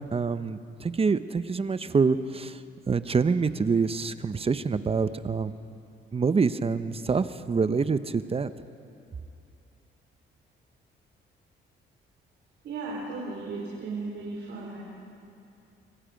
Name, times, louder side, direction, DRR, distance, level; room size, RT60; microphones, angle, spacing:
voice 1, 0.0-2.6 2.9-5.5 6.1-8.5, right 5 dB, 30° right, 12 dB, 0.8 m, -26 dB
voice 2, 12.6-14.8, right 3 dB, 65° right, -4 dB, 4.3 m, -35 dB
26.5 x 23.0 x 5.2 m, 2.6 s
cardioid pair, 90°, 20 cm